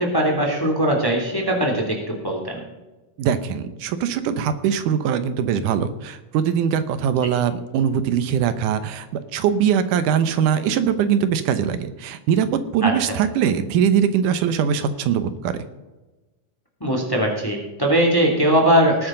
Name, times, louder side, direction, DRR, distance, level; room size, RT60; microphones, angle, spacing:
voice 1, 0.0-2.6 12.8-12.9 16.8-19.1, right 1 dB, 10° left, 1 dB, 2.2 m, -20 dB
voice 2, 3.2-12.5 12.7-15.6, right 8 dB, 80° right, 11 dB, 2.4 m, -21 dB
19.0 x 9.4 x 3.8 m, 1.1 s
omnidirectional pair, 3.7 m